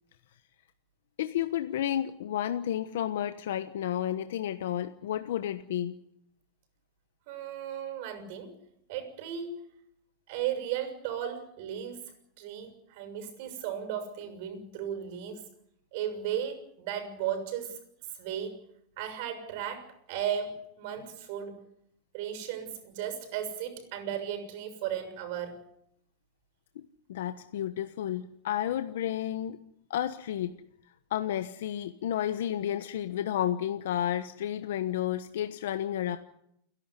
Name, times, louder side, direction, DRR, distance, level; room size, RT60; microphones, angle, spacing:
voice 1, 1.2-6.0 27.1-29.6 29.9-30.6 31.1-36.2, left 11 dB, 85° left, 10 dB, 1.2 m, -31 dB
voice 2, 7.3-8.6 8.9-9.8 10.3-15.5 15.9-17.8 18.1-18.6 19.0-21.6 22.1-25.6, right 9 dB, 60° right, 9 dB, 6.7 m, -35 dB
29.5 x 11.5 x 9.9 m, 0.75 s
supercardioid pair, 150°, 0 cm